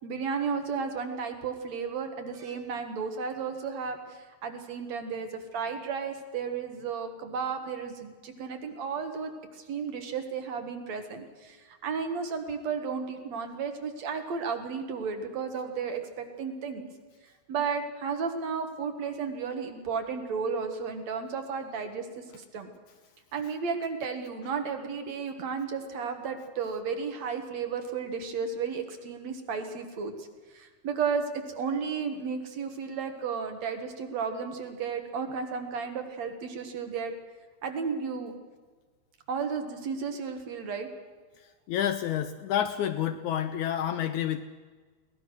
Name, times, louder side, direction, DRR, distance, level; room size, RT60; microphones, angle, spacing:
voice 1, 0.0-16.9 17.5-22.7 23.3-37.1 37.6-38.3 39.3-40.9, right 5 dB, 55° right, 6 dB, 2.7 m, -33 dB
voice 2, 41.7-44.4, left 10 dB, 75° left, 10 dB, 1.8 m, -29 dB
22.5 x 18.5 x 6.4 m, 1.4 s
omnidirectional pair, 4.1 m